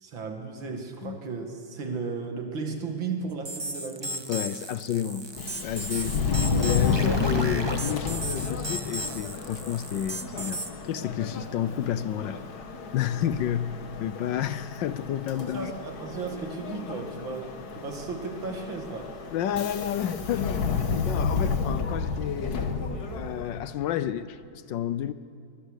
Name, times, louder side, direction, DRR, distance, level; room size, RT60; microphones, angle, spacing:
voice 1, 0.0-4.3 15.4-19.2, right 4 dB, 70° right, 2.8 m, -35 dB
sound 1, 3.4-10.7, right 1 dB, 20° right, 0.8 m, -35 dB
voice 2, 4.3-5.3 5.6-6.2 6.6-10.6 10.9-12.4 12.9-15.7 19.3-20.6 21.0-22.7 23.1-25.1, left 10 dB, 70° left, 1.3 m, -30 dB
Subway metro underground, 5.3-23.7, left 5 dB, 55° left, 1.8 m, -31 dB
23.5 x 21.0 x 6.6 m
omnidirectional pair, 2.2 m